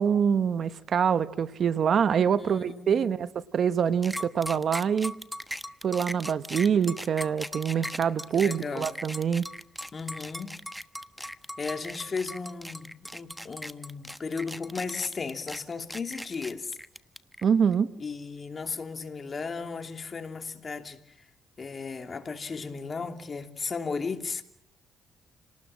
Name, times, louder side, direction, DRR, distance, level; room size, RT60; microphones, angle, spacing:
voice 1, 0.0-5.1 5.8-9.5 17.4-17.9, right 7 dB, 55° right, 1.0 m, -25 dB
voice 2, 2.4-3.1 7.7-8.9 9.9-10.6 11.2-11.3 11.6-16.8 18.0-21.3 21.6-24.4, left 4 dB, 35° left, 2.9 m, -35 dB
sound 1, 4.0-17.4, equal, ahead, 1.2 m, -38 dB
29.5 x 19.5 x 7.6 m
cardioid pair, 90°, 0 cm